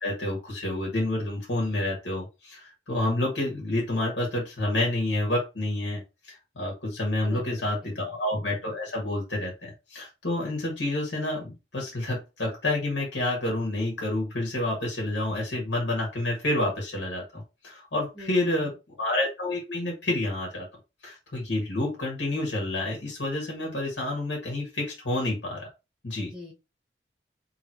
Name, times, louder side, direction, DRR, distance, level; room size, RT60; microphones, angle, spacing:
voice 1, 0.0-20.7 21.0-25.7 26.0-26.3, left 1 dB, 90° left, -1 dB, 1.7 m, -29 dB
voice 2, 18.1-18.7 26.2-26.5, left 1 dB, ahead, -1 dB, 1.0 m, -43 dB
3.5 x 3.1 x 4.6 m, 0.27 s
head